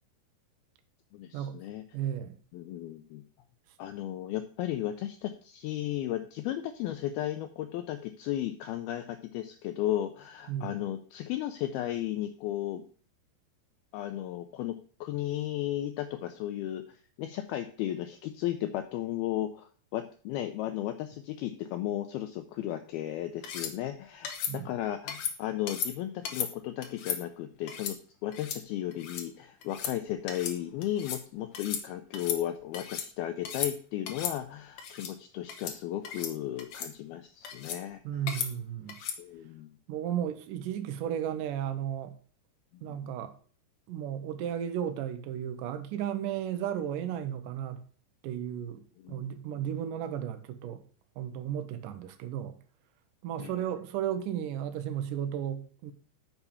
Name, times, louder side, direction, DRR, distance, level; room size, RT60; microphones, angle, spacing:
voice 1, 1.1-1.8 2.5-3.2 3.8-12.8 13.9-28.0 28.2-38.0 39.2-39.7 42.7-43.1 49.0-49.2 53.4-53.6, left 12 dB, 90° left, 2.2 m, -35 dB
voice 2, 1.9-2.4 10.5-10.8 24.5-24.7 38.0-39.0 39.9-42.1 42.8-43.4 43.9-47.8 48.2-50.8 51.2-52.6 53.2-55.9, right 10 dB, 85° right, 1.8 m, -34 dB
sound 1, 23.4-23.7 24.2-24.5 25.1-25.3 25.7-25.9 26.2-26.5 26.8-27.2 27.7-27.9 28.3-28.6 28.9-29.2 29.6-29.9 30.3-30.6 30.8-31.2 31.5-31.8 32.1-33.1 33.4-33.7 34.1-34.3 34.8-35.1 35.5-35.8 36.0-36.3 36.6-36.9 37.4-37.8 38.3-38.5 38.9-39.2, left 8 dB, 70° left, 1.8 m, -35 dB
6.8 x 6.0 x 6.8 m
omnidirectional pair, 5.1 m